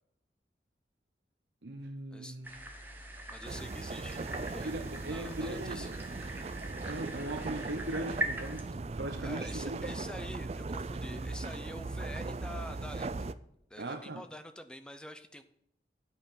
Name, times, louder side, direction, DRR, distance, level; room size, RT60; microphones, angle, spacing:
voice 1, 1.6-2.5 4.6-6.0 6.8-8.7 9.0-10.0 13.8-14.2, right 1 dB, 70° right, 4 dB, 0.8 m, -39 dB
sound 1, 2.4-8.6, right 1 dB, 10° right, 1.2 m, -41 dB
voice 2, 3.3-4.2 4.5-5.9 9.2-13.3 13.7-15.4, left 1 dB, 5° left, 9 dB, 0.6 m, -46 dB
sound 2, 3.4-13.3, right 3 dB, 35° right, 0.4 m, -39 dB
9.5 x 5.8 x 6.8 m, 0.74 s
head